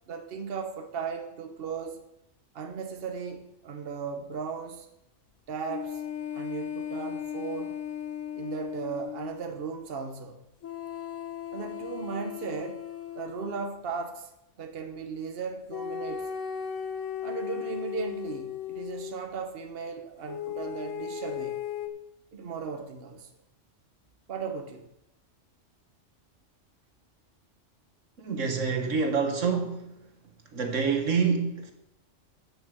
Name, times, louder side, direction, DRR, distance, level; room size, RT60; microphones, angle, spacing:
voice 1, 0.1-2.0 2.5-4.9 5.5-6.0 6.3-7.8 8.4-10.4 11.5-12.9 13.1-14.3 14.6-16.3 17.2-21.6 22.3-23.3 24.3-24.9, right 5 dB, 55° right, 5 dB, 1.2 m, -36 dB
sound 1, 5.7-9.4 10.6-13.7 15.7-19.2 20.3-21.9, left 9 dB, 85° left, 1.2 m, -36 dB
voice 2, 28.2-29.9 30.5-31.7, right 5 dB, 85° right, 4 dB, 1.7 m, -27 dB
10.0 x 5.7 x 7.5 m, 0.84 s
omnidirectional pair, 1.3 m